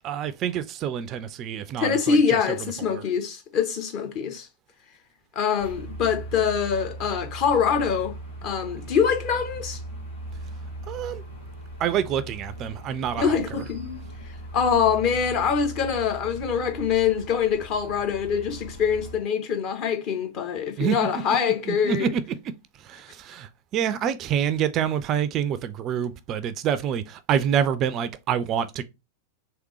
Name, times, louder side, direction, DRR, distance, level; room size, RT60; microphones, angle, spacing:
voice 1, 0.0-3.0 10.9-11.2 11.8-13.6 20.8-21.0 21.7-22.2 22.8-28.8, right 9 dB, 35° right, 0.3 m, -27 dB
voice 2, 1.8-4.5 5.3-8.2 8.4-9.8 13.2-14.0 14.5-22.1, left 7 dB, 40° left, 0.9 m, -24 dB
sound 1, 5.6-19.2, right 1 dB, 75° left, 1.8 m, -39 dB
3.5 x 3.1 x 3.1 m
figure-of-eight pair, 90°, 0 cm